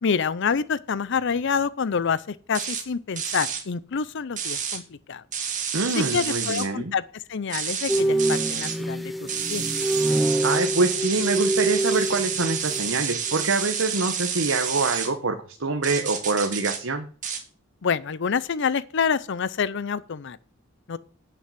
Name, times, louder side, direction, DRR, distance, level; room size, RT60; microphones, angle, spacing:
voice 1, 0.0-5.2 6.0-9.1 9.5-9.7 17.8-20.4 20.9-21.0, left 6 dB, 60° left, 0.5 m, -27 dB
sound 1, 2.5-2.8 3.2-3.6 4.4-4.8 5.3-6.7 7.5-8.8 9.3-15.1 15.8-16.8 17.2-17.4, right 7 dB, 40° right, 2.1 m, -29 dB
voice 2, 5.7-6.9 10.4-17.1, right 3 dB, 70° right, 1.2 m, -25 dB
sound 2, 7.9-13.0 13.3-13.6, right 1 dB, ahead, 0.8 m, -26 dB
9.2 x 6.8 x 7.4 m
head